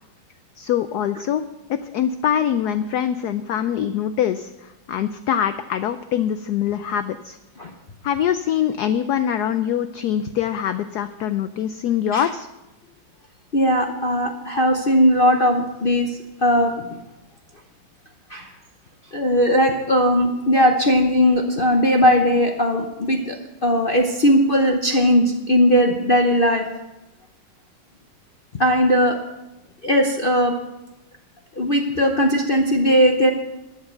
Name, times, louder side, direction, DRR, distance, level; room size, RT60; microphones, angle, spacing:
voice 1, 0.6-1.4 1.7-7.4 8.0-12.5, left 9 dB, 90° left, 11 dB, 0.8 m, -23 dB
voice 2, 13.5-17.0 18.3-18.5 19.1-26.7 28.6-29.2 29.8-30.6 31.6-33.3, equal, 70° left, 3 dB, 0.5 m, -18 dB
12.0 x 8.0 x 6.7 m, 0.98 s
omnidirectional pair, 2.3 m